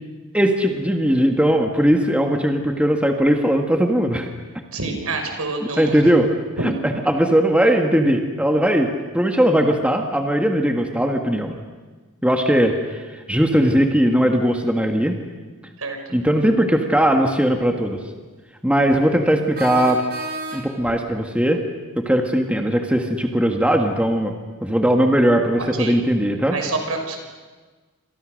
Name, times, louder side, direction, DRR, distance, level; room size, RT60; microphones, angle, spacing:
voice 1, 0.3-4.3 5.8-6.3 7.1-11.6 12.2-15.2 16.1-18.0 18.6-20.0 20.5-21.6 22.0-24.3 24.6-26.6, equal, 5° right, 3 dB, 1.7 m, -19 dB
voice 2, 4.7-6.0 15.8-16.0 25.6-26.0 26.5-27.2, right 3 dB, 70° right, 4 dB, 5.7 m, -27 dB
sound 1, 17.2-17.3 19.5-21.0, right 3 dB, 45° right, 4.9 m, -31 dB
29.5 x 27.0 x 6.5 m, 1.3 s
head